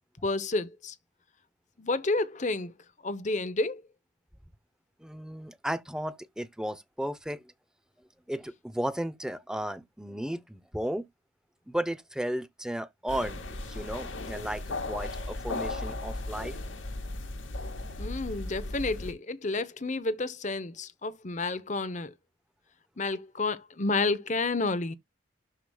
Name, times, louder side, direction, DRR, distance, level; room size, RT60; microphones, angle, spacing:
voice 1, 0.2-1.0 1.8-2.7 3.0-3.8 18.0-22.1 23.0-24.9, left 3 dB, 40° left, 0.9 m, -30 dB
voice 2, 5.0-7.5 8.3-11.1 11.7-16.6, right 1 dB, 5° right, 0.7 m, -34 dB
sound 1, 13.1-19.1, left 2 dB, 90° left, 2.4 m, -36 dB
12.5 x 5.1 x 2.4 m
head